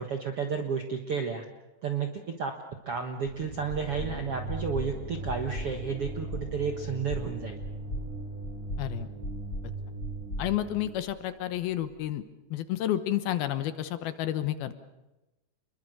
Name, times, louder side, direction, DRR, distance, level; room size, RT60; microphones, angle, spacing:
voice 1, 0.0-1.5 1.8-2.5 2.8-7.6, right 6 dB, 60° right, 5 dB, 1.5 m, -32 dB
sound 1, 3.2-11.1, right 2 dB, 80° right, 7.1 m, -40 dB
sound 2, 3.3-3.4 3.7-4.1 4.5-4.9 5.3-5.7 6.0-6.5 6.8-7.3 7.6-8.1 8.4-8.8 9.2-9.7 10.0-11.2, left 1 dB, 20° left, 3.2 m, -37 dB
voice 2, 8.8-9.1 10.4-12.2 12.5-14.8, left 12 dB, 70° left, 12 dB, 2.7 m, -30 dB
29.0 x 22.0 x 6.7 m, 1.0 s
omnidirectional pair, 4.8 m